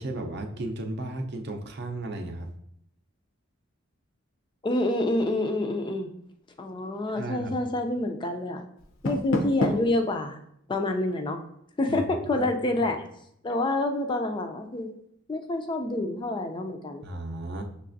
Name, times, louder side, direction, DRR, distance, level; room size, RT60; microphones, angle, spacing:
voice 1, 0.0-2.5 7.2-7.5 11.9-12.0 12.4-12.5 17.0-17.6, right 2 dB, 55° right, 4 dB, 0.5 m, -34 dB
voice 2, 4.6-6.1 6.6-8.6 9.0-10.4 10.7-11.4 11.8-13.0 13.4-14.9 15.3-17.0, left 2 dB, 20° left, 5 dB, 0.3 m, -27 dB
Door, 8.8-10.0, left 1 dB, 70° left, 0.6 m, -28 dB
5.6 x 3.2 x 2.5 m, 0.73 s
head